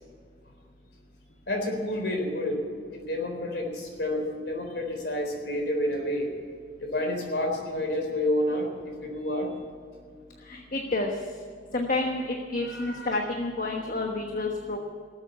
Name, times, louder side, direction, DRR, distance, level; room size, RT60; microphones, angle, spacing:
voice 1, 1.5-2.6 2.9-6.3 6.8-9.5 12.6-13.2, left 1 dB, 65° left, 2 dB, 3.9 m, -29 dB
voice 2, 10.5-11.1 11.7-14.8, left 2 dB, 50° left, 2 dB, 1.2 m, -29 dB
18.5 x 8.0 x 8.3 m, 2.1 s
head